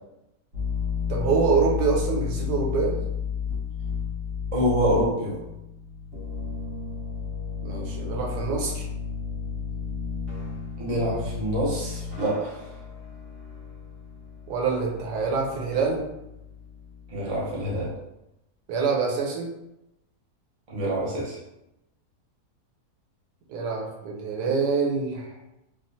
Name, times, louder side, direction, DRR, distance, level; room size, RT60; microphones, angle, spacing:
sound 1, 0.5-17.9, left 6 dB, 60° right, 1.4 m, -33 dB
voice 1, 1.1-3.0 7.6-8.9 14.5-16.1 18.7-19.5 23.5-25.3, right 5 dB, 90° right, -1 dB, 1.3 m, -25 dB
voice 2, 4.5-5.4 10.8-12.7 17.1-17.9 20.7-21.4, equal, 30° right, -5 dB, 0.6 m, -26 dB
3.4 x 2.4 x 2.6 m, 0.89 s
omnidirectional pair, 1.7 m